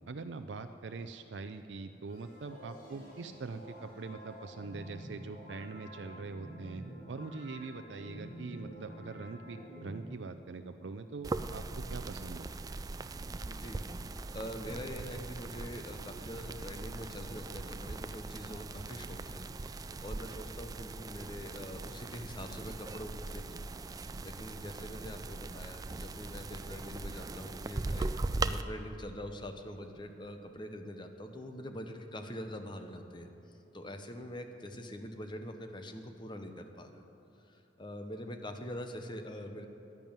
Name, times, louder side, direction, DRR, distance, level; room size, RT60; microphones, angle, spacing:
voice 1, 0.1-12.5, right 4 dB, 85° right, 8 dB, 0.5 m, -43 dB
sound 1, 2.1-10.0, equal, 55° left, 3.7 m, -49 dB
sound 2, 11.2-28.6, right 3 dB, 20° right, 0.3 m, -40 dB
voice 2, 13.4-36.9 37.5-39.7, equal, 25° left, 6 dB, 0.9 m, -44 dB
11.0 x 11.0 x 8.9 m, 2.9 s
head